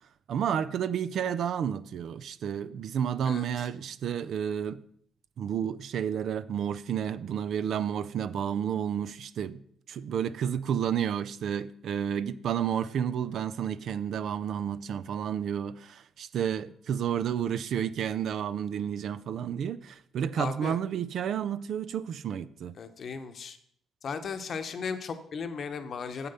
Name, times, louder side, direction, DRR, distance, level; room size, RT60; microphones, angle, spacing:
voice 1, 0.3-4.8 5.4-9.6 9.9-22.7, right 8 dB, 70° right, 0.4 m, -31 dB
voice 2, 3.2-3.7 20.4-20.8 22.8-23.6 24.0-26.3, left 5 dB, 55° left, 0.9 m, -36 dB
7.5 x 6.8 x 5.5 m
cardioid pair, 90°, 0 cm